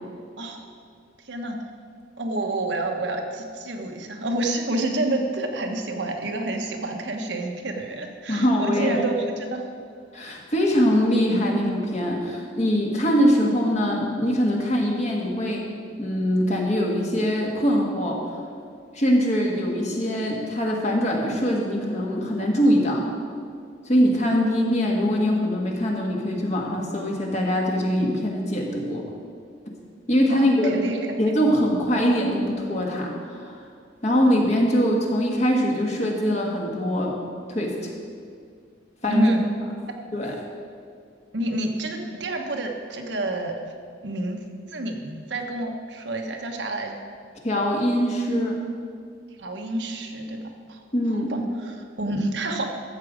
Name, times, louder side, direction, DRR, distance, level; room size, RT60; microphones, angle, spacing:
voice 1, 1.2-1.6 2.2-9.7 30.3-31.3 39.1-39.5 41.3-43.6 44.0-44.4 44.7-47.0 49.4-50.8 51.1-52.7, right 1 dB, 75° right, 3 dB, 1.2 m, -28 dB
voice 2, 8.3-9.0 10.1-15.7 16.0-18.2 18.9-23.0 23.8-29.1 30.1-30.7 31.2-33.6 34.0-37.2 37.5-37.9 39.0-39.3 40.1-40.3 47.4-48.6 50.9-51.4, equal, 40° left, -1 dB, 1.6 m, -22 dB
13.0 x 7.7 x 5.0 m, 2.2 s
head